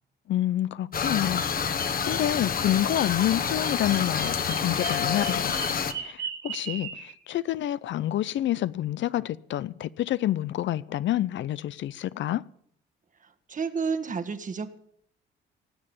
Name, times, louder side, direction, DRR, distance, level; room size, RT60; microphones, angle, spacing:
voice 1, 0.3-1.7 2.0-12.4, left 13 dB, 70° left, 0.6 m, -28 dB
sound 1, 0.9-5.9, left 6 dB, 45° left, 1.3 m, -28 dB
Bird vocalization bird call bird song, 3.4-7.1, right 6 dB, 80° right, 4.5 m, -37 dB
voice 2, 13.5-14.8, right 5 dB, 40° right, 1.6 m, -30 dB
19.0 x 7.6 x 8.7 m
cardioid pair, 90°, 20 cm